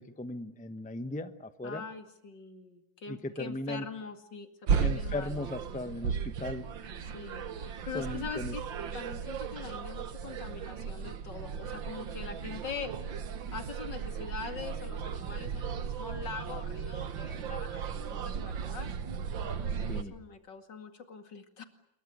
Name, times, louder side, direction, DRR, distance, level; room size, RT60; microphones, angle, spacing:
voice 1, 0.0-1.8 3.1-3.8 4.7-6.7 7.9-8.5 19.8-20.1, left 2 dB, 5° left, 11 dB, 0.8 m, -37 dB
voice 2, 1.6-5.4 7.1-8.6 8.9-12.9 13.5-17.8 18.1-18.9 19.5-21.6, left 5 dB, 70° left, 8 dB, 2.9 m, -43 dB
sound 1, 4.7-20.0, right 6 dB, 85° right, 2.1 m, -35 dB
27.5 x 23.0 x 8.0 m, 0.86 s
omnidirectional pair, 2.0 m